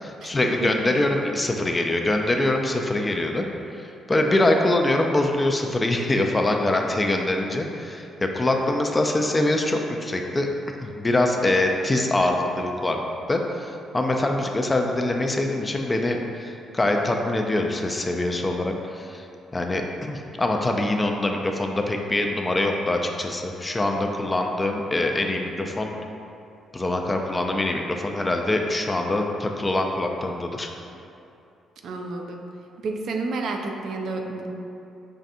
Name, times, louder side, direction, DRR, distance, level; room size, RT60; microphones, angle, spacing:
voice 1, 0.0-3.5 3.8-10.5 10.8-13.0 13.3-19.2 19.5-25.9 26.7-30.7, left 2 dB, 20° left, 2 dB, 0.3 m, -24 dB
voice 2, 0.6-1.0 31.8-32.4 32.8-34.5, right 3 dB, 70° right, 2 dB, 0.4 m, -30 dB
5.4 x 2.5 x 2.5 m, 2.7 s
cardioid pair, 90°, 0 cm